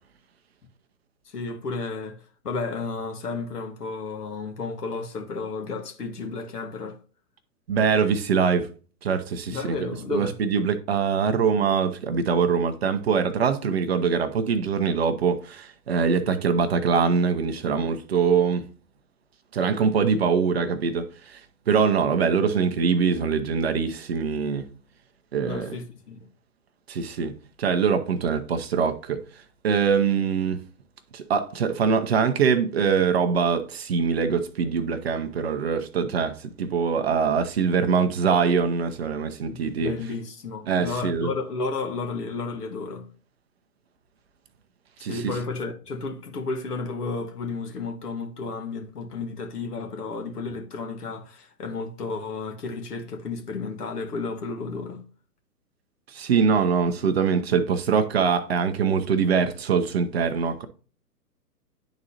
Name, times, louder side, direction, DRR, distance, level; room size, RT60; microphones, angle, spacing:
voice 1, 1.2-7.0 9.5-10.4 25.4-26.3 39.5-43.1 45.0-55.0, left 4 dB, 65° left, 1.5 m, -32 dB
voice 2, 7.7-8.7 9.0-18.7 19.5-21.4 21.7-24.7 25.3-25.7 26.9-29.2 29.6-30.6 31.1-39.9 40.7-41.3 45.0-45.3 56.1-60.7, right 6 dB, 40° right, 0.6 m, -23 dB
10.5 x 3.9 x 2.8 m
figure-of-eight pair, 125°, 49 cm